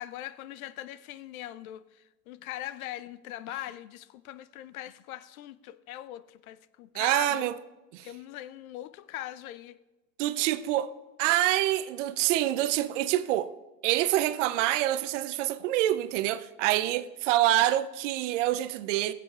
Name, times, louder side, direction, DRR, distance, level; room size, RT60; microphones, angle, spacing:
voice 1, 0.0-7.6 8.0-9.8, left 14 dB, 60° left, 0.6 m, -41 dB
voice 2, 6.9-7.6 7.9-8.1 10.2-10.9 11.2-13.5 13.8-19.1, right 14 dB, 50° right, 0.6 m, -26 dB
22.5 x 7.5 x 2.4 m
hypercardioid pair, 115°, 50 cm